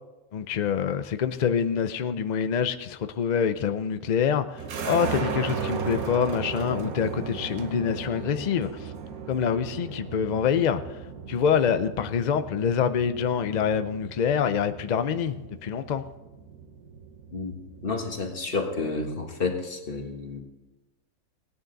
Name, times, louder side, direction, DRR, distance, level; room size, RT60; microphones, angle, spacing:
voice 1, 0.3-8.9 9.3-11.0 11.3-16.0, left 7 dB, 80° left, 10 dB, 0.4 m, -26 dB
sound 1, 4.6-18.1, right 5 dB, 85° right, 1.5 m, -36 dB
voice 2, 17.8-20.4, left 3 dB, 40° left, 3 dB, 1.7 m, -30 dB
17.5 x 9.7 x 4.0 m, 1.1 s
omnidirectional pair, 1.5 m